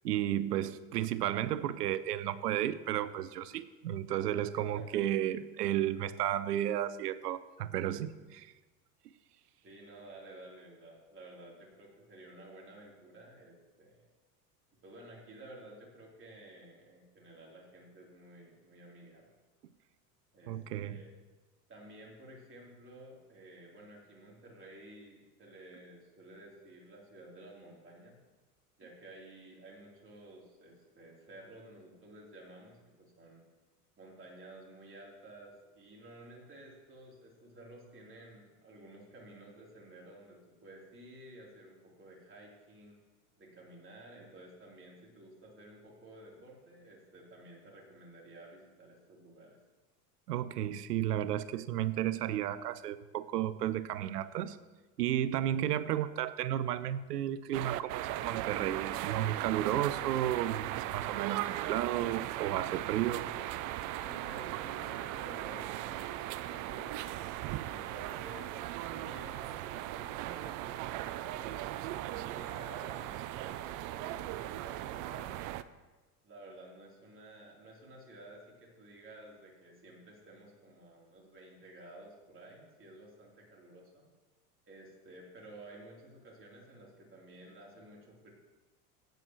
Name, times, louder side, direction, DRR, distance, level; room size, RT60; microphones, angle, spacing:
voice 1, 0.0-8.5 20.5-21.0 50.3-54.6 55.0-63.3, right 12 dB, 85° right, 16 dB, 0.7 m, -33 dB
voice 2, 9.6-14.0 14.8-19.3 20.3-20.5 20.8-21.1 21.7-28.2 28.8-33.4 34.0-43.0 43.4-49.6 64.0-67.1 67.6-68.6 68.9-71.6 72.1-75.4 76.2-84.1 84.7-88.3, right 1 dB, 25° right, -3 dB, 3.6 m, -53 dB
sound 1, 57.5-75.6, right 14 dB, 45° right, 0.5 m, -38 dB
15.5 x 9.1 x 3.1 m, 1.2 s
hypercardioid pair, 90°, 47 cm